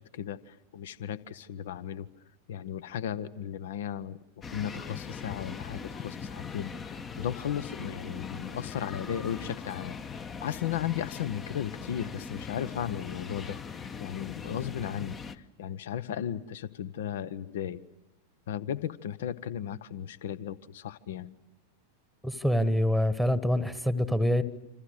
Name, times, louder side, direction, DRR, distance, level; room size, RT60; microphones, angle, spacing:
voice 1, 0.0-2.1 2.5-4.2 4.5-17.8 18.5-21.3, left 9 dB, 55° left, 18 dB, 0.9 m, -35 dB
sound 1, 4.4-15.4, left 6 dB, 20° left, 1.0 m, -40 dB
voice 2, 22.2-24.4, left 1 dB, ahead, 14 dB, 1.4 m, -25 dB
27.0 x 27.0 x 6.7 m, 0.97 s
figure-of-eight pair, 90°, 0 cm